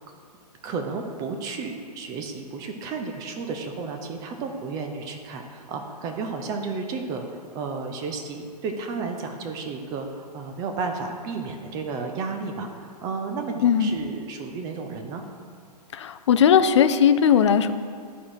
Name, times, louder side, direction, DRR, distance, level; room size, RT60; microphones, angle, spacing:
voice 1, 0.6-15.2, right 4 dB, 15° right, 4 dB, 0.5 m, -32 dB
voice 2, 13.6-13.9 15.9-17.7, left 8 dB, 45° left, 11 dB, 0.4 m, -18 dB
12.0 x 4.5 x 4.8 m, 2.2 s
figure-of-eight pair, 120°, 21 cm